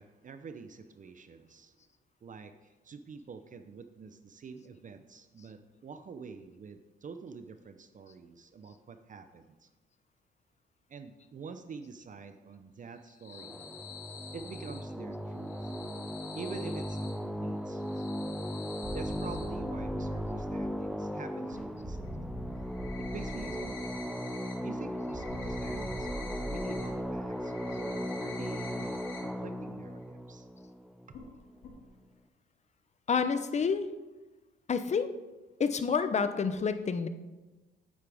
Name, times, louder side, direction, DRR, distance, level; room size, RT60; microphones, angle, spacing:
voice 1, 0.0-1.8 2.2-9.7 10.9-13.7 14.3-15.7 16.3-17.8 18.9-22.3 23.0-24.0 24.6-30.5, right 5 dB, 40° right, 9 dB, 0.6 m, -47 dB
sound 1, 13.0-14.8 15.4-17.1 17.7-19.4 21.5-21.6 22.0-22.1 22.5-24.5 24.8-26.9 27.2-29.2 29.5-29.6 30.0-30.1 31.1-31.3 31.6-31.7, left 5 dB, 80° left, 2.3 m, -48 dB
sound 2, 13.3-31.5, equal, ahead, 0.4 m, -37 dB
sound 3, 18.8-21.1 21.8-24.1 25.1-27.4, equal, 20° right, 2.5 m, -42 dB
voice 2, 33.1-33.8 34.7-35.1 35.6-37.1, left 5 dB, 35° left, 10 dB, 0.7 m, -28 dB
8.8 x 8.4 x 3.5 m, 1.2 s
cardioid pair, 90°, 20 cm